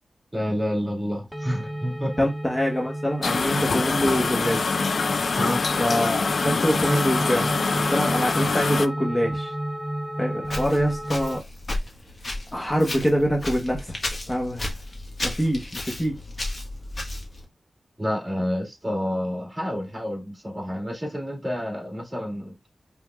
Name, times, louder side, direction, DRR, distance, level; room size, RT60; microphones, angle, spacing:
voice 1, 0.3-2.3 5.4-5.6 18.0-22.5, equal, 20° right, 2.0 m, -29 dB
sound 1, 1.3-11.4, right 1 dB, ahead, 0.6 m, -32 dB
voice 2, 2.2-4.8 5.8-9.5 10.2-11.4 12.5-14.0 14.3-14.8 15.2-16.2, equal, 20° left, 1.0 m, -25 dB
sound 2, 3.2-8.9, left 4 dB, 65° left, 0.3 m, -25 dB
Walk footsteps, 10.4-17.4, left 1 dB, 40° left, 1.4 m, -33 dB
5.2 x 3.4 x 2.3 m
wide cardioid pair, 105°, 0 cm